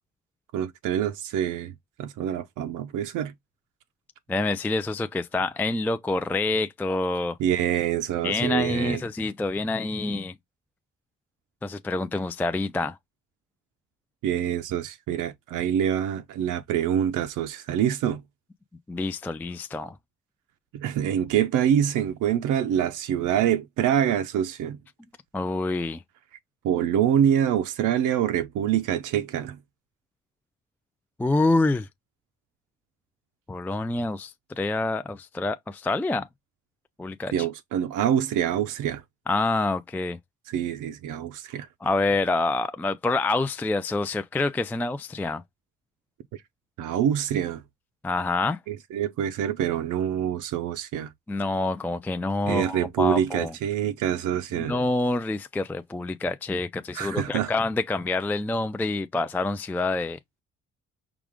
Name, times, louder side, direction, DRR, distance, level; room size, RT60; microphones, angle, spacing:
voice 1, 0.5-1.7 2.0-3.3 7.4-9.0 14.2-18.2 20.7-24.8 26.6-29.6 37.3-39.0 40.5-41.7 46.8-47.6 48.7-51.1 52.5-54.8 56.9-57.5, right 10 dB, 85° right, 0.6 m, -25 dB
voice 2, 4.3-7.4 8.2-10.3 11.6-13.0 18.9-19.9 25.3-26.0 31.2-31.9 33.5-36.3 37.0-37.3 39.3-40.2 41.8-45.4 48.0-48.6 51.3-53.5 54.6-60.2, left 2 dB, 5° left, 0.3 m, -27 dB
4.9 x 2.4 x 3.5 m
cardioid pair, 90°, 30 cm